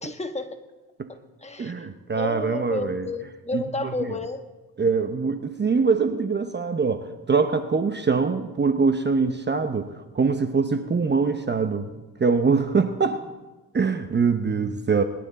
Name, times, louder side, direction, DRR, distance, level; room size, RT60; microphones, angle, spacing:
voice 1, 0.0-0.5 1.1-4.4, left 2 dB, 15° left, 7 dB, 1.3 m, -32 dB
voice 2, 1.6-3.0 3.5-3.6 4.8-9.9 10.1-11.9 12.2-13.2 13.7-15.0, right 5 dB, 25° right, 9 dB, 0.8 m, -23 dB
21.0 x 11.5 x 4.1 m, 1.2 s
cardioid pair, 90°, 40 cm